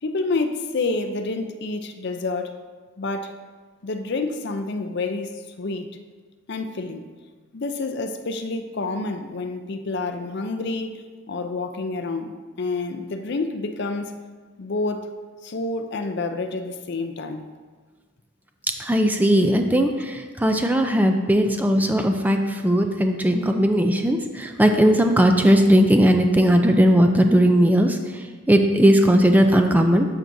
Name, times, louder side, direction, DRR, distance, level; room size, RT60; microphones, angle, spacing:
voice 1, 0.0-2.6 3.0-3.4 3.8-5.9 6.5-7.0 7.5-14.1 14.6-15.0 15.4-17.5, left 3 dB, 50° left, 7 dB, 0.5 m, -28 dB
voice 2, 18.8-30.1, equal, 10° right, 5 dB, 0.4 m, -18 dB
11.0 x 5.8 x 2.7 m, 1.5 s
head